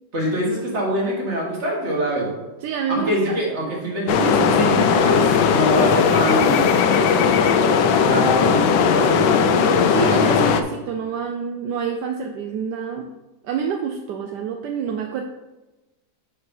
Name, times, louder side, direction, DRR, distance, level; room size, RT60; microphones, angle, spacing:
voice 1, 0.1-2.3 3.1-6.6 8.0-10.4, equal, 40° right, -3 dB, 2.1 m, -24 dB
voice 2, 2.6-3.4 9.9-13.1 13.4-15.2, right 7 dB, 80° right, 4 dB, 1.2 m, -27 dB
sound 1, 4.1-10.6, left 6 dB, 85° left, 1.2 m, -17 dB
6.8 x 4.4 x 5.4 m, 1.1 s
omnidirectional pair, 1.8 m